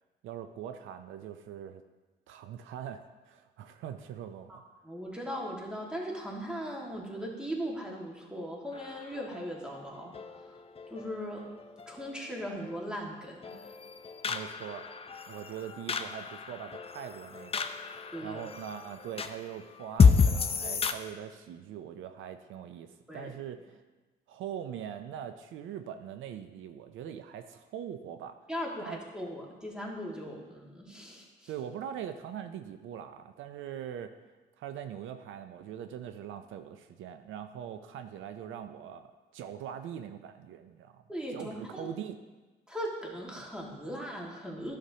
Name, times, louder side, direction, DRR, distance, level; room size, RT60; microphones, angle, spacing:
voice 1, 0.2-1.8 2.3-4.6 14.3-14.9 15.3-17.7 18.2-23.8 24.3-28.4 28.8-29.0 31.5-34.1 34.6-41.0 41.3-42.2, right 9 dB, 80° right, 9 dB, 0.5 m, -42 dB
voice 2, 4.5-10.6 10.9-11.5 11.9-13.7 18.1-18.4 23.1-23.3 28.5-31.5 41.1-41.9 42.7-44.8, equal, 5° right, -2 dB, 1.8 m, -39 dB
sound 1, 8.7-20.9, left 5 dB, 30° left, 0.5 m, -31 dB
11.5 x 6.6 x 2.8 m, 1.2 s
cardioid pair, 90°, 20 cm